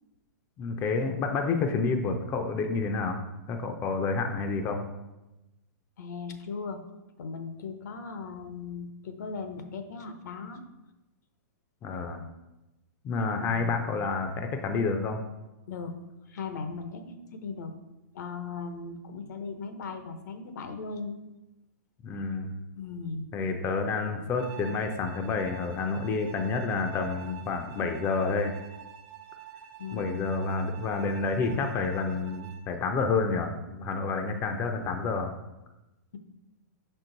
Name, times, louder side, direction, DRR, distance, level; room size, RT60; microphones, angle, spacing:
voice 1, 0.6-3.2 3.5-4.9 11.8-12.2 13.0-15.2 22.0-22.5 23.3-28.6 29.9-35.3, left 4 dB, 25° left, 5 dB, 0.5 m, -29 dB
voice 2, 6.0-6.8 7.2-10.6 13.4-13.8 15.7-15.9 16.3-17.7 18.1-21.2 22.8-23.3 29.8-30.2, left 4 dB, 75° left, 8 dB, 0.8 m, -38 dB
Bowed string instrument, 24.4-32.8, right 10 dB, 35° right, 0.8 m, -48 dB
6.1 x 4.6 x 3.8 m, 0.98 s
hypercardioid pair, 150°, 10 cm